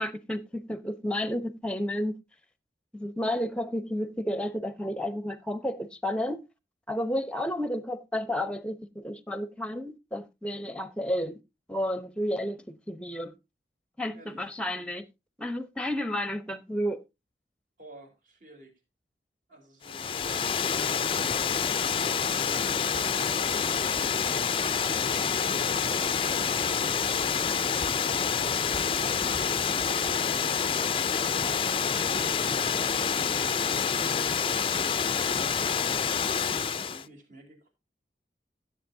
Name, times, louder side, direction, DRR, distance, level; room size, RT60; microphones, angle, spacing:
voice 1, 0.0-2.2 2.9-6.5 6.9-11.4 11.7-13.3 14.0-15.0 15.4-17.0, left 1 dB, 5° left, 0.8 m, -31 dB
voice 2, 14.1-14.5 17.8-18.8 19.5-22.8 28.9-29.5 35.0-37.7, right 1 dB, 45° right, 3.9 m, -53 dB
Water, 19.8-37.0, left 6 dB, 30° left, 0.4 m, -27 dB
Typing, 20.1-31.2, equal, 15° right, 1.9 m, -50 dB
16.0 x 7.6 x 2.7 m
head